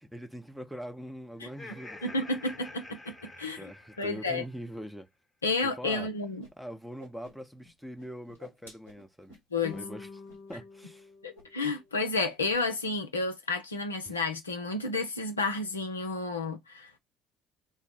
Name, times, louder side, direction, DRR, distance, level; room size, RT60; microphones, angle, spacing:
voice 1, 0.0-2.2 3.6-5.1 5.6-6.1 6.6-9.4 9.7-10.2 10.5-11.1 14.0-14.2, equal, ahead, 0.7 m, -43 dB
Laughter, 1.4-4.6, left 2 dB, 20° left, 0.9 m, -48 dB
voice 2, 2.0-3.6 4.0-4.4 5.4-6.4 9.5-9.8 11.2-17.0, left 3 dB, 80° left, 0.4 m, -31 dB
Whoosh swoosh swish, 6.4-6.5 6.8-7.7 8.0-9.9 10.3-10.6 10.8-11.0 11.3-11.9 12.1-12.7, equal, 85° right, 1.4 m, -54 dB
sound 1, 9.6-12.2, left 4 dB, 55° left, 0.8 m, -47 dB
2.7 x 2.0 x 3.2 m
figure-of-eight pair, 55°, 0 cm